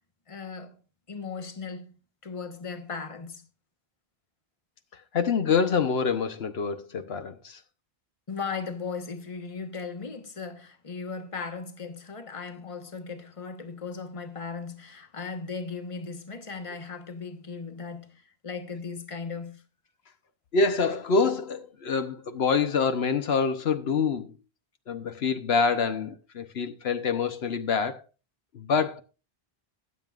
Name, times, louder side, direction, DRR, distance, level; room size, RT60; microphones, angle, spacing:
voice 1, 0.3-0.8 1.1-1.9 2.2-3.4 8.3-19.6, left 5 dB, 35° left, 1.2 m, -37 dB
voice 2, 5.1-7.6 20.5-24.3 24.9-28.0 28.5-29.0, left 5 dB, 75° left, 1.1 m, -26 dB
22.0 x 7.5 x 2.4 m
omnidirectional pair, 1.0 m